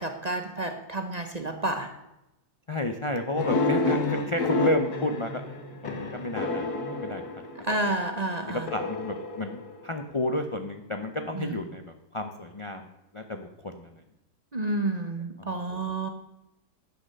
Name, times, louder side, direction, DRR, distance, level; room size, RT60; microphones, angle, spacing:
voice 1, 0.0-1.9 7.6-8.7 11.3-11.6 14.5-16.1, right 2 dB, 35° right, 6 dB, 0.8 m, -30 dB
voice 2, 2.7-7.2 8.5-11.8 12.1-12.9 13.1-13.9 15.4-15.6, left 1 dB, 40° left, 5 dB, 0.4 m, -31 dB
sound 1, 3.4-7.9 8.7-10.2, left 3 dB, 75° left, 1.9 m, -29 dB
10.5 x 7.7 x 6.5 m, 0.93 s
omnidirectional pair, 1.7 m